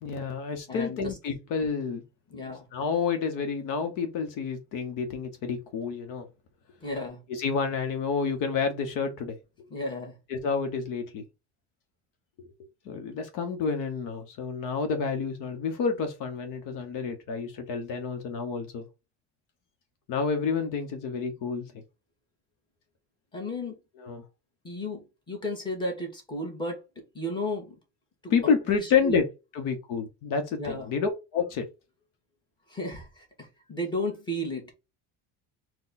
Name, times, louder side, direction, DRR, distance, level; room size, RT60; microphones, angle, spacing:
voice 1, 0.0-2.0 2.7-6.2 7.3-9.4 10.3-11.2 12.9-18.8 20.1-21.6 24.0-24.2 28.3-29.2 29.5-31.7, left 5 dB, 65° left, 1.0 m, -29 dB
voice 2, 0.7-1.2 2.3-2.7 6.8-7.3 9.7-10.2 23.3-23.8 24.6-26.8 27.1-27.7 28.2-28.3 28.7-29.2 30.6-30.9 32.7-34.7, left 1 dB, 15° left, 1.5 m, -33 dB
4.4 x 2.3 x 3.9 m
cardioid pair, 170°, 35 cm